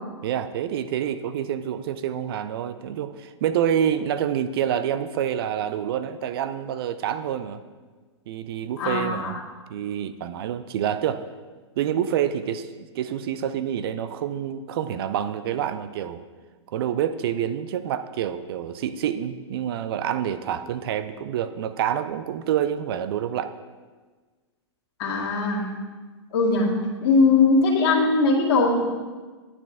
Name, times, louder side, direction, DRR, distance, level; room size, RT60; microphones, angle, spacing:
voice 1, 0.2-7.6 8.3-9.4 9.7-11.2 11.8-16.2 16.7-23.5, right 9 dB, 55° right, 11 dB, 0.5 m, -27 dB
voice 2, 8.8-9.4 25.0-25.6 26.3-26.7 27.0-28.8, left 3 dB, 55° left, -2 dB, 2.0 m, -20 dB
9.7 x 7.0 x 3.6 m, 1.4 s
hypercardioid pair, 115°, 15 cm